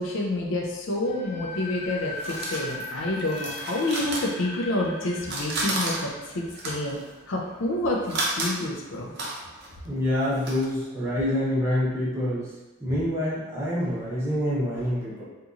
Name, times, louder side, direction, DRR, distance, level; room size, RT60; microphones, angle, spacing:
voice 1, 0.0-7.0 7.3-9.1, left 1 dB, 65° left, -1 dB, 0.4 m, -28 dB
sound 1, 1.0-7.9, left 2 dB, 30° left, 0.8 m, -39 dB
sound 2, 1.5-4.9 5.2-10.6, right 2 dB, 50° right, 0.5 m, -33 dB
voice 2, 9.8-12.5 12.8-15.2, left 1 dB, 15° right, -9 dB, 0.7 m, -26 dB
2.8 x 2.6 x 2.4 m, 1.1 s
head